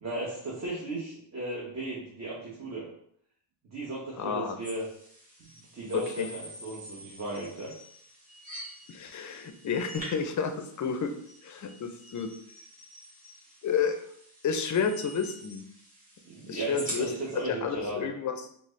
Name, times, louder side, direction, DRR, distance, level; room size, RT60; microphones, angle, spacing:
voice 1, 0.0-2.9 3.7-4.8 5.7-7.7 16.2-18.0, right 2 dB, 35° right, -5 dB, 0.8 m, -36 dB
voice 2, 4.2-4.6 5.9-6.3 8.9-11.1 11.4-12.3 13.6-14.0 14.4-15.6 16.5-17.1 17.5-18.4, left 6 dB, 40° left, 7 dB, 0.4 m, -30 dB
sound 1, 4.6-17.4, equal, 15° right, 1.5 m, -46 dB
4.0 x 2.1 x 3.1 m, 0.68 s
cardioid pair, 105°, 48 cm